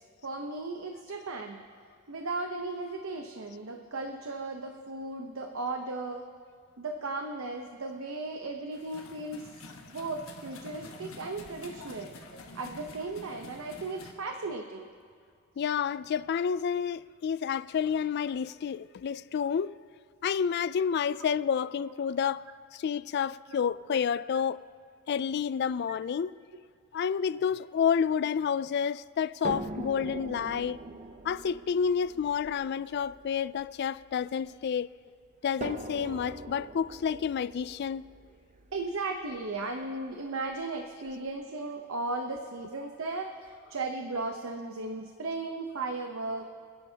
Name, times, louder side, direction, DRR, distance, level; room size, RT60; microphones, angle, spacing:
voice 1, 0.0-1.6 2.1-6.3 6.8-9.5 9.9-12.2 12.5-14.9 16.7-16.8 21.1-21.2 21.8-21.9 23.9-24.0 27.3-27.5 30.9-31.0 38.7-46.5, right 3 dB, 80° right, 0.9 m, -36 dB
sound 1, 8.7-14.1, left 2 dB, 85° left, 1.4 m, -47 dB
voice 2, 15.6-19.8 20.2-22.5 22.7-24.6 25.1-26.4 26.9-30.8 31.2-34.9 35.4-38.0, left 7 dB, 50° left, 0.3 m, -29 dB
sound 2, 29.4-34.7 35.6-39.6 40.5-40.6 41.1-41.2, right 2 dB, 35° right, 0.6 m, -42 dB
28.0 x 10.5 x 2.8 m
head